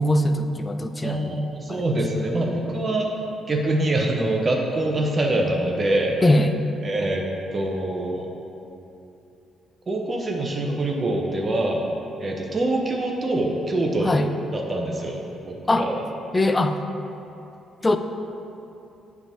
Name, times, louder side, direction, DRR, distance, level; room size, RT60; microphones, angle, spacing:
voice 1, 0.0-1.4 1.7-1.8 2.2-2.3 6.2-6.5 14.0-14.3 15.7-15.9 16.3-16.8 17.8-18.0, left 1 dB, 20° left, 8 dB, 0.4 m, -21 dB
voice 2, 1.0-3.1 3.5-6.2 6.8-7.2 7.5-8.3 9.9-11.8 12.2-14.2 14.5-16.0, right 1 dB, 35° right, 0 dB, 0.8 m, -24 dB
7.8 x 3.6 x 5.7 m, 2.9 s
cardioid pair, 90°, 0 cm